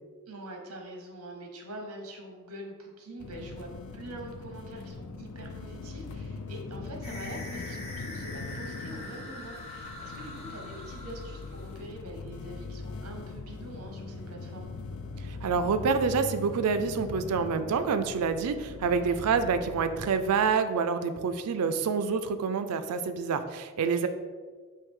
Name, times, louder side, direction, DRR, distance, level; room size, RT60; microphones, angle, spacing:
voice 1, 0.3-14.7 18.9-19.2 23.8-24.1, right 1 dB, 75° right, 2 dB, 0.9 m, -44 dB
sound 1, 3.2-20.5, left 3 dB, 90° left, 0.4 m, -41 dB
sound 2, 7.0-11.9, left 2 dB, 30° left, 0.7 m, -43 dB
voice 2, 15.4-24.1, right 5 dB, 90° right, 10 dB, 0.4 m, -27 dB
4.7 x 2.7 x 3.6 m, 1.5 s
head